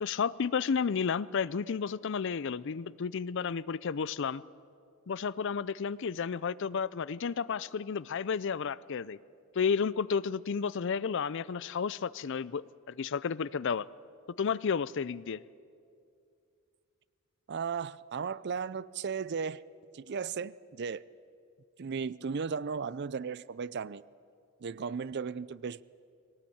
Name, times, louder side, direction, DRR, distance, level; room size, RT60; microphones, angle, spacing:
voice 1, 0.0-4.4 5.1-9.2 9.5-13.9 14.4-15.4, left 6 dB, 55° left, 19 dB, 0.5 m, -32 dB
voice 2, 17.5-19.6 19.9-21.0 21.8-24.0 24.6-25.8, right 5 dB, 50° right, 19 dB, 0.4 m, -35 dB
21.0 x 18.0 x 8.6 m, 2.4 s
head